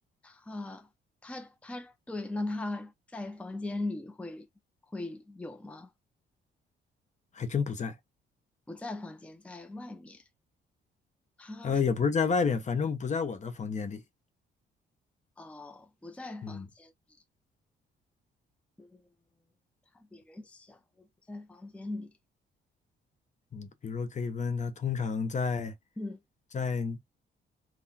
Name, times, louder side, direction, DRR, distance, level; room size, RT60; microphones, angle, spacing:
voice 1, 0.2-0.9 1.2-4.5 4.9-5.9 8.7-10.2 11.4-11.8 15.4-16.9 18.8-19.0 19.9-22.1 26.0-26.2, left 2 dB, 5° left, 0.6 m, -40 dB
voice 2, 7.3-8.0 11.6-14.0 16.4-16.7 23.5-25.7 26.5-27.0, left 5 dB, 35° left, 0.8 m, -30 dB
3.6 x 2.2 x 2.8 m
cardioid pair, 90°, 20 cm